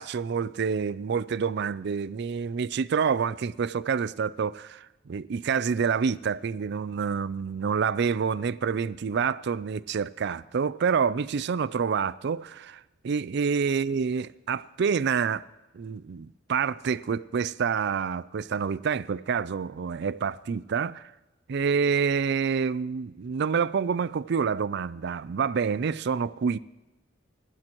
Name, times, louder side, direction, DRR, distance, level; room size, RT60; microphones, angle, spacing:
voice 1, 0.0-15.4 15.7-21.1 21.5-26.6, right 6 dB, 60° right, 0.4 m, -27 dB
27.0 x 12.0 x 3.0 m
head